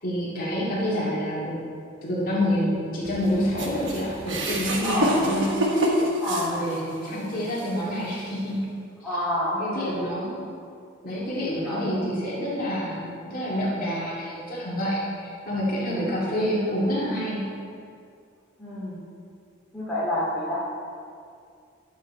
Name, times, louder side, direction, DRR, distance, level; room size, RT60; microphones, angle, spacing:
voice 1, 0.0-1.6 2.0-5.9 6.3-8.6 9.6-10.4 11.0-17.4, equal, 45° left, -7 dB, 2.1 m, -28 dB
Boom, 3.0-5.8, left 1 dB, 85° left, 1.6 m, -44 dB
sound 1, 3.6-7.0 7.5-7.7 8.6-8.7, equal, 65° right, 1.3 m, -26 dB
voice 2, 4.8-5.2 6.2-6.7 7.1-7.4 9.0-10.1 11.5-12.0 18.6-19.0 19.7-20.6, left 1 dB, ahead, -10 dB, 2.3 m, -29 dB
10.5 x 7.0 x 4.3 m, 2.3 s
head